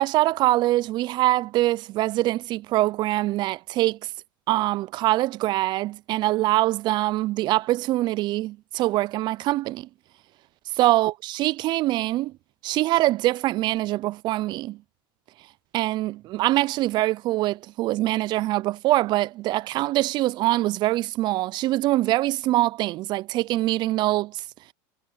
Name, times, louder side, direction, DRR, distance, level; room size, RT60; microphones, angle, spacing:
voice 1, 0.0-4.0 4.5-9.9 10.8-12.3 12.6-14.8 15.7-24.4, right 16 dB, 40° right, 0.4 m, -24 dB
supercardioid pair, 115°, 12 cm